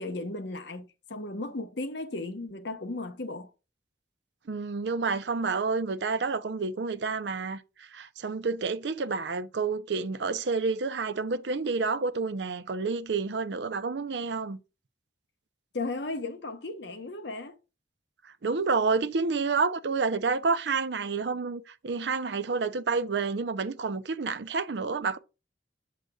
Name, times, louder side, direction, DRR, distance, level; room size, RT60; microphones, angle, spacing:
voice 1, 0.0-3.5 15.7-17.6, left 2 dB, 75° left, 1.0 m, -35 dB
voice 2, 4.5-14.6 18.2-25.2, right 4 dB, 75° right, 0.6 m, -29 dB
7.7 x 6.6 x 2.3 m
head